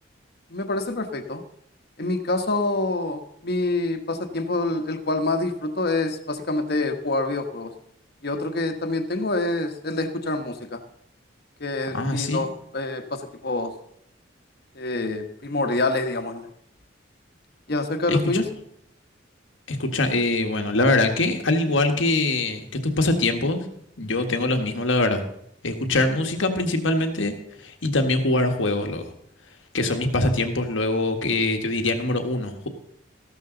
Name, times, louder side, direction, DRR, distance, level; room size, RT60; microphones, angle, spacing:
voice 1, 0.5-1.4 2.0-7.7 8.2-10.8 11.6-12.5 12.7-13.7 14.7-16.5 17.7-18.5, left 2 dB, 55° left, 7 dB, 1.2 m, -26 dB
voice 2, 11.9-12.4 18.1-18.4 19.7-23.7 24.0-25.2 25.6-29.0 29.7-32.7, left 2 dB, 85° left, 5 dB, 1.6 m, -23 dB
14.5 x 12.5 x 3.9 m, 0.73 s
head